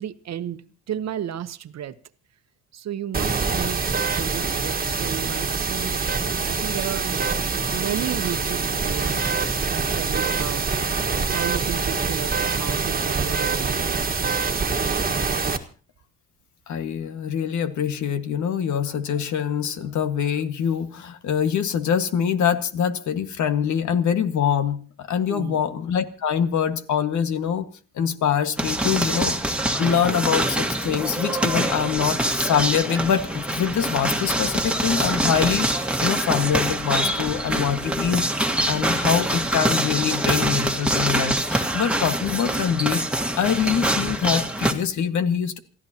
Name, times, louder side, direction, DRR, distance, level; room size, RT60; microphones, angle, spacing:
voice 1, 0.0-2.0 2.7-9.3 9.7-10.6 11.3-14.2 25.3-25.6, right 10 dB, 60° right, 12 dB, 1.1 m, -33 dB
sound 1, 3.1-15.6, right 5 dB, 30° right, 1.6 m, -25 dB
voice 2, 16.7-27.7 27.9-38.2 38.7-45.6, left 8 dB, 70° left, 9 dB, 1.7 m, -24 dB
sound 2, 28.6-44.7, right 1 dB, 5° right, 1.8 m, -24 dB
28.0 x 14.5 x 2.9 m, 0.38 s
cardioid pair, 90°, 30 cm